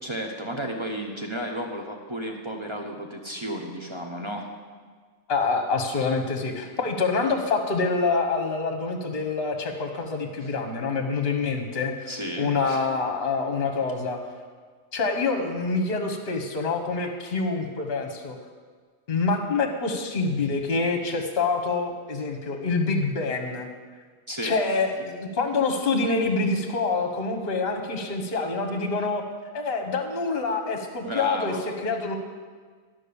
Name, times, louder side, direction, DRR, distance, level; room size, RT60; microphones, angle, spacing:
voice 1, 0.0-4.5 10.4-10.5 12.1-12.9 24.3-24.6 31.0-31.6, equal, 25° right, 2 dB, 0.8 m, -33 dB
voice 2, 5.3-12.1 12.4-14.2 14.9-18.4 19.1-23.7 24.4-29.2 29.5-32.2, left 4 dB, 45° left, 5 dB, 1.3 m, -26 dB
12.0 x 5.7 x 6.9 m, 1.6 s
omnidirectional pair, 1.5 m